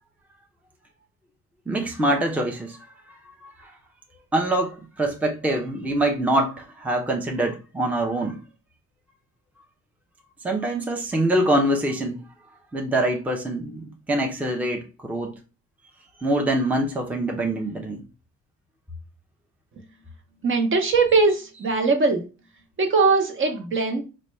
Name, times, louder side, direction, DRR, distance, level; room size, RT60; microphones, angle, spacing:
voice 1, 1.7-2.8 3.4-3.7 4.3-8.4 10.4-12.2 12.7-15.3 16.2-18.0, right 1 dB, 5° right, 0.6 m, -24 dB
voice 2, 20.4-22.3 22.8-24.0, right 4 dB, 40° right, 0.9 m, -20 dB
4.0 x 2.3 x 3.2 m
cardioid pair, 90°, 30 cm